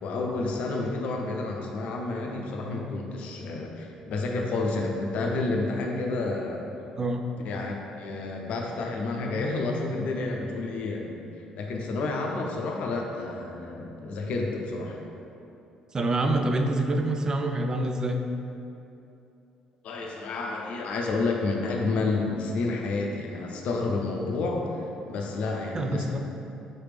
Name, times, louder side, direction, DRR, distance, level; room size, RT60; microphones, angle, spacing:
voice 1, 0.0-6.6 7.4-15.0 19.8-24.7 25.1-26.2, left 3 dB, 65° left, 0 dB, 0.5 m, -30 dB
voice 2, 7.0-7.3 15.9-18.2 25.7-26.2, right 2 dB, 30° right, 4 dB, 0.4 m, -26 dB
4.1 x 3.2 x 3.4 m, 2.8 s
supercardioid pair, 75°, 2 cm